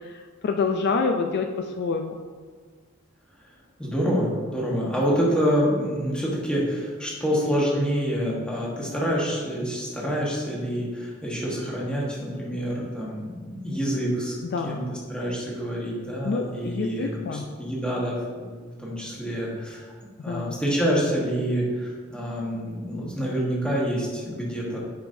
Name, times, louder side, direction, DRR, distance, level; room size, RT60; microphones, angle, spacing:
voice 1, 0.1-2.1 14.5-14.8 16.2-17.5 20.3-20.6, left 4 dB, 50° left, 5 dB, 0.3 m, -27 dB
voice 2, 3.8-14.3 14.6-14.8 15.1-19.9 20.2-24.8, equal, 5° left, -5 dB, 1.4 m, -27 dB
7.8 x 5.1 x 2.6 m, 1.5 s
head